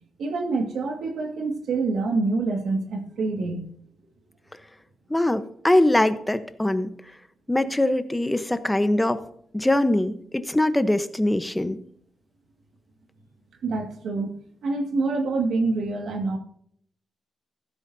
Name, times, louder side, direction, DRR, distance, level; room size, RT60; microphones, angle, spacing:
voice 1, 0.2-3.7 13.6-14.3 14.6-16.4, right 3 dB, 75° right, 4 dB, 2.0 m, -26 dB
voice 2, 5.1-6.9 7.5-9.2 9.5-11.8, left 1 dB, 10° left, 11 dB, 1.0 m, -22 dB
15.0 x 12.5 x 2.8 m, 0.65 s
cardioid pair, 85°, 0 cm